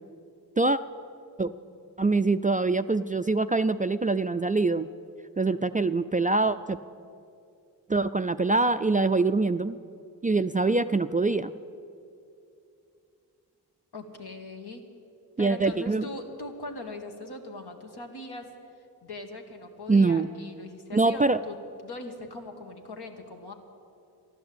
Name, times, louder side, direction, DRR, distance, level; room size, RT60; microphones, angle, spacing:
voice 1, 2.0-4.9 5.4-6.8 7.9-9.8 10.2-11.5 15.4-16.0 19.9-20.3 20.9-21.4, right 3 dB, 20° right, 11 dB, 0.3 m, -24 dB
voice 2, 13.9-14.9 15.4-18.5 19.0-21.6 21.8-23.5, left 2 dB, 70° left, 3 dB, 1.8 m, -40 dB
13.0 x 11.0 x 8.6 m, 2.6 s
cardioid pair, 60°, 40 cm